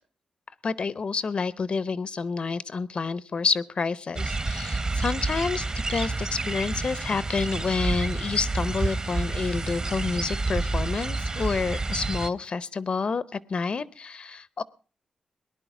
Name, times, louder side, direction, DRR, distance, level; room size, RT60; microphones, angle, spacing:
voice 1, 0.6-14.6, left 4 dB, 50° left, 19 dB, 0.6 m, -29 dB
sound 1, 4.2-12.3, right 3 dB, 35° right, 0.9 m, -29 dB
18.5 x 10.5 x 5.9 m, 0.39 s
cardioid pair, 85°, 2 cm